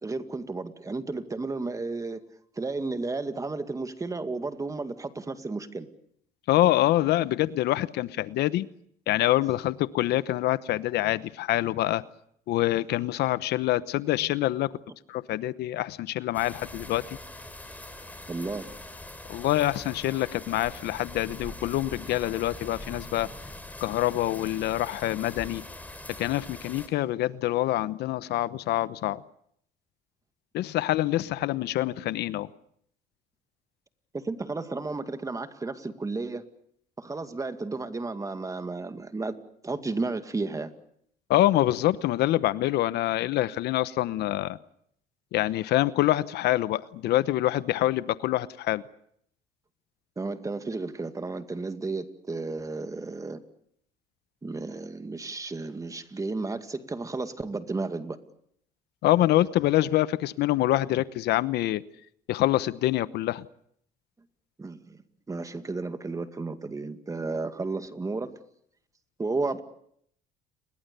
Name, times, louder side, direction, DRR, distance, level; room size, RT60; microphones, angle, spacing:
voice 1, 0.0-2.2 2.6-5.9 18.3-18.7 34.1-36.4 37.0-39.4 39.6-40.7 50.2-53.4 54.4-58.2 64.6-65.0 65.3-68.3 69.2-69.6, right 3 dB, 20° right, 9 dB, 2.1 m, -33 dB
voice 2, 6.5-8.7 9.1-12.0 12.5-14.7 15.1-17.0 19.3-23.3 23.8-25.6 26.2-29.2 30.5-32.5 41.3-44.6 45.3-48.8 59.0-61.8 62.3-63.5, left 15 dB, 80° left, 16 dB, 1.0 m, -25 dB
sound 1, 16.3-26.9, left 1 dB, 10° left, 4.4 m, -43 dB
30.0 x 22.5 x 6.9 m, 0.69 s
cardioid pair, 110°, 17 cm